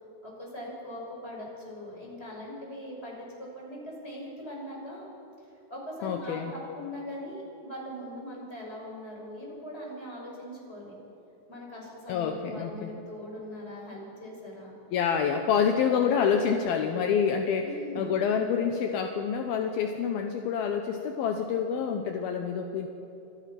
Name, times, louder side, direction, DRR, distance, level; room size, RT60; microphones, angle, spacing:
voice 1, 0.2-5.1 5.7-11.0 11.5-14.7 17.6-18.1, equal, 10° left, -2 dB, 6.4 m, -41 dB
voice 2, 6.0-6.5 12.1-12.9 14.9-17.7 18.0-22.9, left 7 dB, 75° left, 4 dB, 2.3 m, -27 dB
29.5 x 25.5 x 6.0 m, 2.9 s
omnidirectional pair, 5.8 m